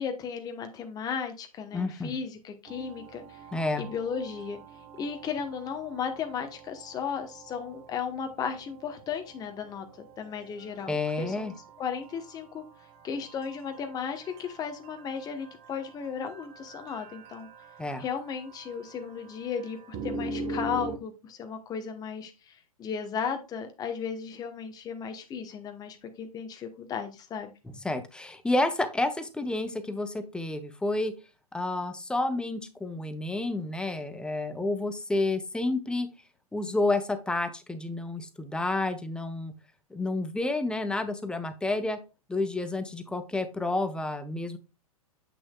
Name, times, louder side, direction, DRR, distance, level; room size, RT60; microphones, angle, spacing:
voice 1, 0.0-3.4 3.8-4.6 5.0-11.5 11.8-12.6 13.0-17.5 18.0-27.5, left 6 dB, 20° left, 6 dB, 1.1 m, -35 dB
voice 2, 1.7-2.1 3.5-3.8 10.9-11.5 17.8-18.0 27.8-31.1 31.5-36.1 36.5-39.5 39.9-42.0 42.3-44.6, left 2 dB, 5° left, 10 dB, 0.7 m, -30 dB
sound 1, 2.7-21.0, right 2 dB, 35° right, 1.3 m, -44 dB
8.1 x 6.2 x 2.3 m, 0.29 s
hypercardioid pair, 115°, 19 cm